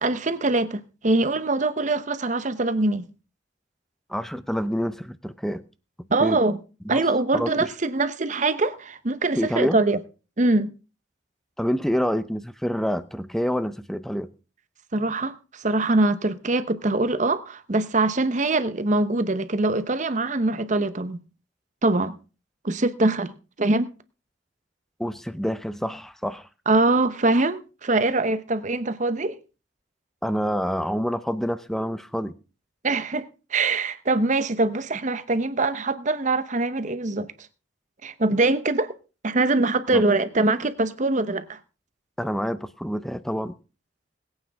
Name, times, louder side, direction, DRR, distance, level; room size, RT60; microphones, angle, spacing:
voice 1, 0.0-3.1 6.1-6.6 6.9-10.0 10.4-10.7 14.9-21.2 21.8-22.2 22.6-23.9 26.7-29.4 32.8-37.3 38.0-38.9 39.2-41.6, right 2 dB, 40° right, 0.9 m, -23 dB
voice 2, 4.1-5.6 6.2-6.4 6.9-7.0 7.3-7.7 9.4-9.8 11.6-14.3 25.0-26.5 30.2-32.3 39.9-40.0 42.2-43.5, equal, ahead, 0.6 m, -27 dB
21.0 x 8.9 x 3.5 m
head